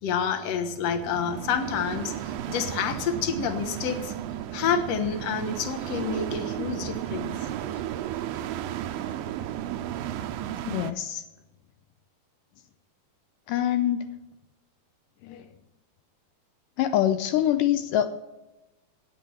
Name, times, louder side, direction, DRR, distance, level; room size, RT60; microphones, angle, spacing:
voice 1, 0.0-4.1 4.5-7.3, left 6 dB, 60° left, 1.8 m, -28 dB
sound 1, 0.8-10.9, right 11 dB, 80° right, 2.3 m, -34 dB
voice 2, 10.6-11.2 13.5-14.1 15.2-15.5 16.8-18.2, left 11 dB, 90° left, 1.9 m, -25 dB
14.0 x 9.4 x 6.1 m
omnidirectional pair, 4.4 m